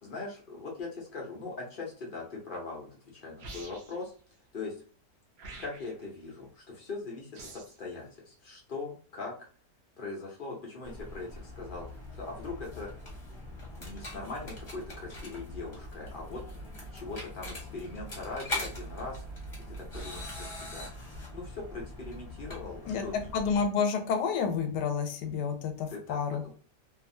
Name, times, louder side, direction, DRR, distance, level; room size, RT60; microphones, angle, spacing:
voice 1, 0.0-4.1 4.5-4.7 5.6-9.5 10.0-12.9 13.7-16.4 16.9-19.2 19.7-20.9 21.3-23.3 25.9-26.5, left 3 dB, 60° left, -2 dB, 0.5 m, -41 dB
sound 1, 3.4-4.1 5.4-6.1 7.3-7.8, right 3 dB, 80° right, 0.5 m, -46 dB
sound 2, 10.8-23.7, left 1 dB, 25° left, 0.8 m, -42 dB
voice 2, 23.3-26.4, left 6 dB, 90° left, 6 dB, 1.2 m, -29 dB
2.6 x 2.5 x 2.6 m, 0.41 s
omnidirectional pair, 1.8 m